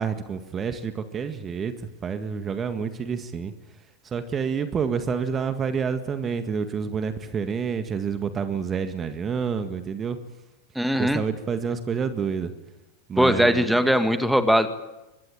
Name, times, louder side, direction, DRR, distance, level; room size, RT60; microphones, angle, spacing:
voice 1, 0.0-3.5 4.1-10.2 11.0-12.5 13.1-13.7, right 6 dB, 20° right, 9 dB, 1.8 m, -28 dB
voice 2, 10.8-11.2 13.2-14.7, equal, ahead, 10 dB, 2.0 m, -20 dB
24.5 x 21.0 x 9.1 m, 0.98 s
figure-of-eight pair, 90°, 0 cm